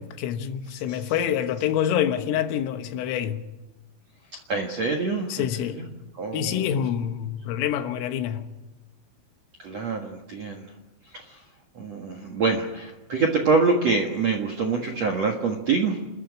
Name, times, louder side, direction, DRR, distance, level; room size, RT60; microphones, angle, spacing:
voice 1, 0.0-3.4 5.3-5.8 6.3-8.5, left 9 dB, 85° left, 3.9 m, -26 dB
voice 2, 4.5-5.9 6.2-6.7 9.6-10.7 11.1-11.4 11.7-16.0, right 4 dB, 65° right, 1.6 m, -25 dB
27.5 x 14.0 x 9.7 m
omnidirectional pair, 5.8 m